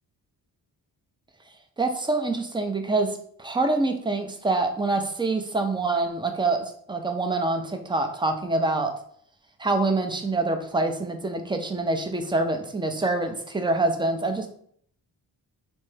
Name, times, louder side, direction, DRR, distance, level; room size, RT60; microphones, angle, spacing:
voice 1, 1.8-8.9 9.6-14.5, right 2 dB, 10° right, 5 dB, 0.5 m, -26 dB
3.3 x 2.1 x 3.2 m, 0.63 s
supercardioid pair, 45°, 44 cm